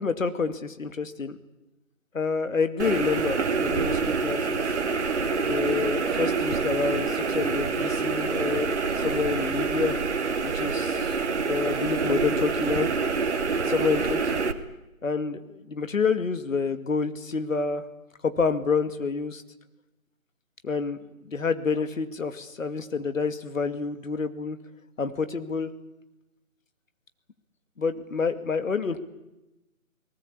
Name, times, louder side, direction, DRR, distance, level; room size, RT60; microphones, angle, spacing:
voice 1, 0.0-1.4 2.1-4.7 5.4-8.8 9.0-10.0 10.4-11.2 11.4-12.9 13.7-14.4 15.0-17.9 18.2-19.4 20.6-21.0 21.2-24.6 25.0-25.7 27.8-29.0, left 5 dB, 65° left, 10 dB, 2.4 m, -28 dB
sound 1, 2.8-14.5, right 4 dB, 50° right, 2.1 m, -26 dB
30.0 x 19.0 x 8.6 m, 0.98 s
figure-of-eight pair, 155°, 42 cm